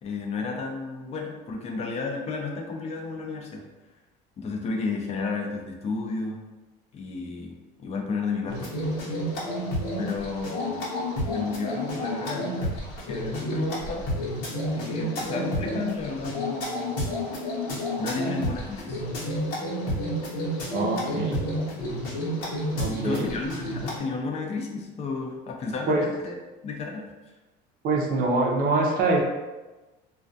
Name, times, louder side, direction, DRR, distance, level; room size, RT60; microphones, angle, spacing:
voice 1, 0.0-3.6 4.4-6.4 6.9-8.6 10.0-10.9 11.3-14.1 14.7-17.0 18.0-19.0 22.9-26.3 26.6-27.1, left 4 dB, 35° left, 1 dB, 0.4 m, -32 dB
sound 1, 8.5-24.0, equal, 80° left, 0.9 m, -30 dB
voice 2, 20.7-21.4 22.8-23.3 25.9-26.0 27.8-29.2, right 2 dB, 50° right, 0 dB, 0.5 m, -24 dB
2.3 x 2.3 x 2.5 m, 1.1 s
cardioid pair, 130°, 19 cm